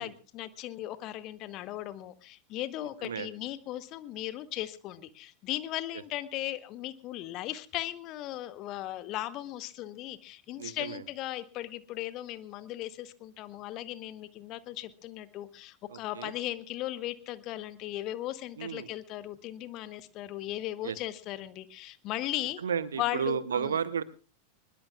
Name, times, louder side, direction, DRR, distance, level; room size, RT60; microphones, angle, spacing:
voice 1, 0.0-22.6 23.0-23.8, left 14 dB, 40° left, 15 dB, 1.1 m, -37 dB
voice 2, 10.6-11.0 15.9-16.3 18.6-18.9 20.8-21.0 22.6-24.0, right 7 dB, 65° right, 16 dB, 1.0 m, -33 dB
21.5 x 21.0 x 2.4 m, 0.33 s
figure-of-eight pair, 90°, 0 cm